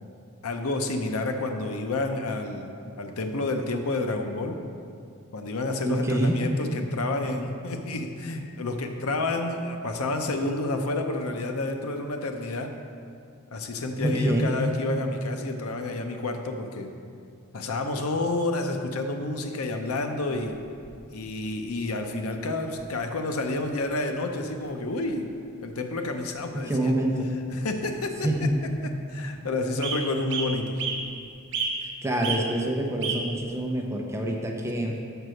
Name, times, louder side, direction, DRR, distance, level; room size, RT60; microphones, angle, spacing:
voice 1, 0.4-4.6 5.3-12.7 13.5-16.9 17.5-20.6 21.1-25.3 25.6-26.9 27.5-28.5 28.8-30.8, left 2 dB, 80° left, 5 dB, 0.6 m, -29 dB
voice 2, 5.8-6.4 14.0-14.6 26.5-27.3 28.2-28.5 31.8-35.0, right 1 dB, 15° right, 0 dB, 0.7 m, -26 dB
sound 1, 20.4-21.3 22.4-22.5 22.8-22.9 23.5-23.9 24.1-24.2 24.5-24.7 25.1-25.3 26.2-26.3 26.7-26.8 27.9-28.0 28.3-28.7 29.2-29.3 29.8-30.0 30.3-31.0 31.5-31.9 32.2-32.4 33.0-33.2 33.9-34.0, right 6 dB, 60° right, 1.0 m, -31 dB
6.5 x 4.6 x 6.4 m, 2.4 s
head